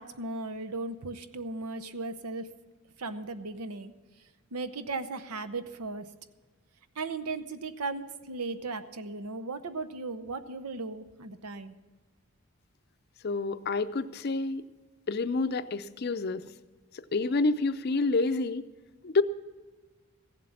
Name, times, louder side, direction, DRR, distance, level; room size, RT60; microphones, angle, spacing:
voice 1, 0.0-2.5 3.0-3.9 4.5-6.1 7.0-11.8, right 3 dB, 90° right, 10 dB, 0.8 m, -36 dB
voice 2, 13.2-14.6 15.1-16.5 16.9-18.7 19.0-19.2, left 3 dB, 45° left, 12 dB, 0.5 m, -28 dB
16.0 x 7.5 x 7.1 m, 1.3 s
head